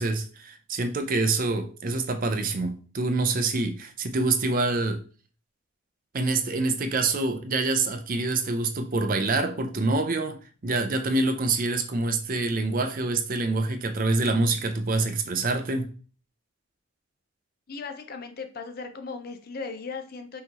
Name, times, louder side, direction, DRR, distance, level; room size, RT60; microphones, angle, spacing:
voice 1, 0.0-5.0 6.1-10.4 10.6-15.9, right 3 dB, 40° right, 7 dB, 0.5 m, -26 dB
voice 2, 17.7-20.4, left 4 dB, 45° left, 7 dB, 0.6 m, -37 dB
5.6 x 3.1 x 2.9 m, 0.39 s
head